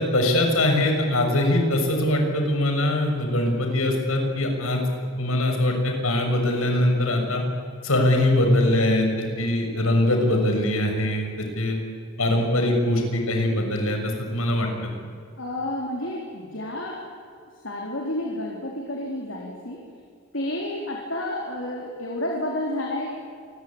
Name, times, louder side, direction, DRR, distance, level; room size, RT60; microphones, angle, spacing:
voice 1, 0.0-4.9 5.2-7.4 7.8-11.8 12.2-14.7, left 1 dB, 85° left, 3 dB, 6.7 m, -22 dB
voice 2, 15.4-17.2 17.6-19.8 20.3-23.1, left 1 dB, 65° left, -1 dB, 4.1 m, -30 dB
28.0 x 22.0 x 9.0 m, 2.3 s
head